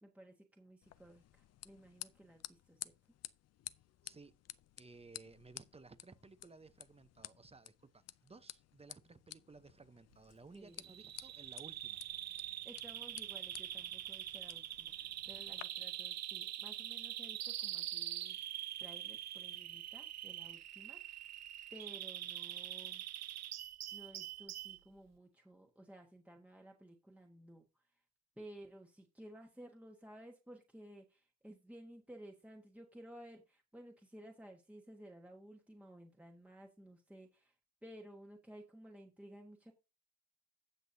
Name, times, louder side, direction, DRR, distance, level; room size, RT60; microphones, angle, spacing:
voice 1, 0.0-2.9 10.5-10.9 12.6-21.3 21.7-23.0 23.9-27.7 28.4-37.5 37.8-39.7, right 1 dB, 5° right, 1.4 m, -56 dB
sound 1, 0.8-15.6, left 12 dB, 55° left, 0.6 m, -54 dB
voice 2, 4.8-12.0, right 3 dB, 20° right, 0.9 m, -58 dB
Bird vocalization bird call bird song, 10.8-24.8, right 12 dB, 60° right, 0.6 m, -44 dB
16.5 x 6.0 x 2.7 m
cardioid pair, 90°, 30 cm